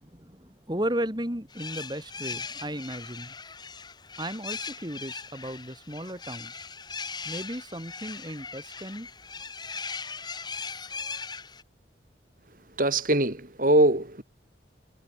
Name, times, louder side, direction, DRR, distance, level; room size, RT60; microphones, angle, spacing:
voice 1, 0.0-3.3 4.2-6.6 7.2-9.1, right 1 dB, 25° right, 4.1 m, -35 dB
sound 1, 1.5-11.6, left 5 dB, 25° left, 6.4 m, -39 dB
voice 2, 12.8-14.2, right 1 dB, 45° right, 3.5 m, -22 dB
head